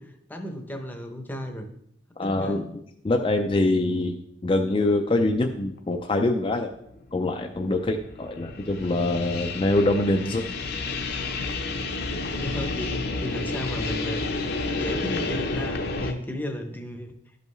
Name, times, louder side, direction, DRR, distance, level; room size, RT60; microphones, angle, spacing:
voice 1, 0.0-1.7 2.2-2.7 12.3-14.4 14.7-17.1, equal, 10° left, 5 dB, 0.7 m, -34 dB
voice 2, 2.2-2.7 3.0-6.7 7.1-10.4, left 2 dB, 30° left, 3 dB, 0.4 m, -24 dB
sound 1, 5.8-5.9 6.4-16.1, left 3 dB, 55° left, 0.7 m, -31 dB
12.0 x 5.4 x 3.1 m, 0.74 s
head